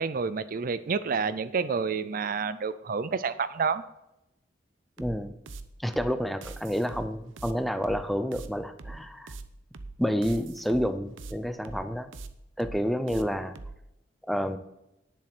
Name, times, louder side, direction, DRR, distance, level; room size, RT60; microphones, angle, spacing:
voice 1, 0.0-3.8, right 5 dB, 45° right, 14 dB, 0.5 m, -29 dB
voice 2, 5.0-5.4 5.8-9.3 10.0-12.1 12.6-13.6 14.3-14.6, equal, ahead, 10 dB, 0.5 m, -29 dB
sound 1, 5.0-13.8, right 3 dB, 85° right, 0.8 m, -42 dB
10.0 x 7.4 x 6.0 m, 0.88 s
head